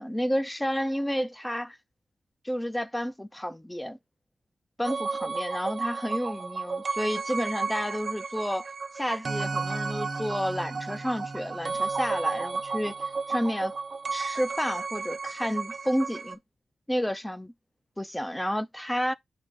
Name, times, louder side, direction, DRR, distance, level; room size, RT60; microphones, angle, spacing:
voice 1, 0.0-1.8 2.4-4.0 4.8-8.7 8.9-13.0 13.3-13.7 14.1-16.4 16.9-17.5 18.0-19.1, equal, 5° left, 0.5 m, -30 dB
sound 1, 4.8-16.4, right 4 dB, 40° right, 0.9 m, -33 dB
8.9 x 3.0 x 5.1 m
wide cardioid pair, 155°, 0 cm